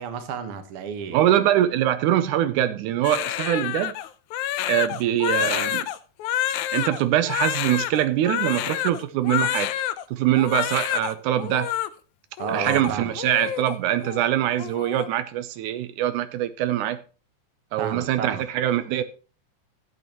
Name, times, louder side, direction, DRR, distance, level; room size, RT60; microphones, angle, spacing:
voice 1, 0.0-1.3 12.4-13.1 17.8-18.4, right 7 dB, 55° right, 1.9 m, -31 dB
voice 2, 1.1-3.9 4.7-5.9 6.7-9.7 10.1-11.7 12.5-17.0 17.7-19.0, right 12 dB, 85° right, 2.1 m, -23 dB
Crying sobbing, 3.0-10.0 10.4-11.1 11.4-11.9 12.4-13.8 14.0-14.3 14.6-15.1, left 12 dB, 80° left, 2.0 m, -28 dB
14.0 x 8.4 x 3.0 m
omnidirectional pair, 3.5 m